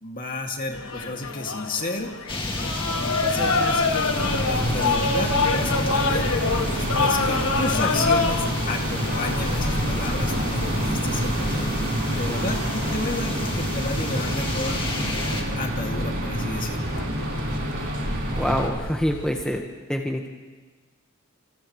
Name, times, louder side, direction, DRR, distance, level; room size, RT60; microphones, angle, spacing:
voice 1, 0.0-2.1 2.9-4.1 4.5-6.3 6.6-11.7 12.1-14.8 15.6-16.9, left 2 dB, 40° left, 1 dB, 2.4 m, -32 dB
sound 1, 0.7-19.6, left 4 dB, 70° left, 1.5 m, -29 dB
sound 2, 2.3-15.4, left 2 dB, 25° left, 2.1 m, -31 dB
sound 3, 4.1-18.7, right 1 dB, 60° right, 4.5 m, -28 dB
voice 2, 18.3-19.6 19.9-20.3, equal, 5° left, 0 dB, 1.4 m, -25 dB
29.0 x 28.0 x 3.2 m, 1.3 s
head